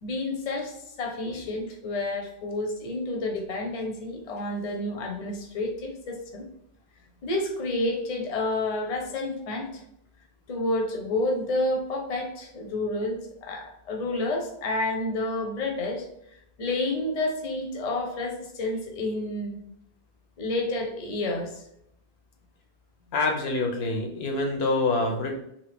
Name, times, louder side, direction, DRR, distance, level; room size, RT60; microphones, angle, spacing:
voice 1, 0.0-6.5 7.2-9.8 10.5-16.0 16.6-19.6 20.4-21.6, left 2 dB, 45° left, 2 dB, 0.6 m, -30 dB
voice 2, 23.1-25.4, left 2 dB, 80° left, 3 dB, 0.9 m, -26 dB
2.8 x 2.6 x 3.3 m, 0.76 s
omnidirectional pair, 1.0 m